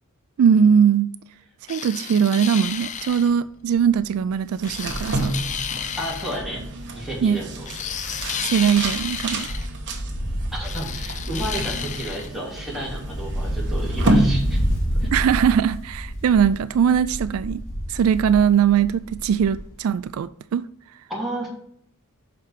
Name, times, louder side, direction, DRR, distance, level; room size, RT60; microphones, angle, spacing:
voice 1, 0.4-1.1 1.7-5.4 7.2-7.4 8.4-9.5 15.1-17.6 17.9-20.6, right 7 dB, 70° right, 0.3 m, -20 dB
sound 1, 1.7-3.3 4.6-6.4 7.7-9.7 10.6-12.3, left 8 dB, 35° left, 0.4 m, -32 dB
Wind, 2.7-3.0 3.4-3.5 3.7-7.3 7.6-19.8 20.0-20.1, equal, 60° left, 2.5 m, -30 dB
sound 2, 4.5-15.1, right 1 dB, 55° right, 1.3 m, -29 dB
voice 2, 6.0-6.6 6.9-7.7 8.0-8.2 10.5-14.6 15.0-15.1 21.1-21.5, right 1 dB, ahead, 2.8 m, -32 dB
5.8 x 5.0 x 6.4 m
head